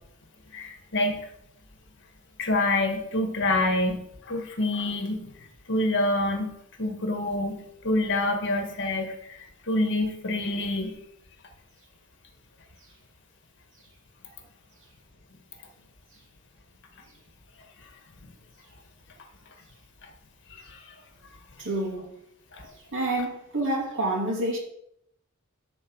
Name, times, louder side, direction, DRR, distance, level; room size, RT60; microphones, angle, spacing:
voice 1, 0.5-1.1 2.4-5.3 5.7-6.5 6.8-7.6 7.8-10.9 18.2-18.3 20.5-20.8 22.5-22.6, left 2 dB, 55° left, 1.8 m, -27 dB
voice 2, 21.6-22.1 22.9-24.6, right 1 dB, 60° right, 2.5 m, -28 dB
12.0 x 4.4 x 6.3 m
head